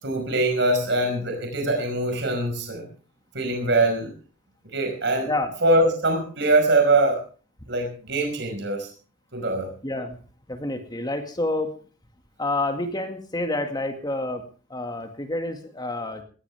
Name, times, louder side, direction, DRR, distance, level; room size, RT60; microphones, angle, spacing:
voice 1, 0.0-2.8 3.3-4.1 4.7-5.3 5.6-7.2 7.7-8.9 9.3-9.7, right 2 dB, 65° right, 3 dB, 5.2 m, -23 dB
voice 2, 9.8-10.2 10.5-11.8 12.4-16.2, left 2 dB, 20° left, 6 dB, 2.0 m, -28 dB
20.0 x 16.0 x 3.5 m, 0.37 s
head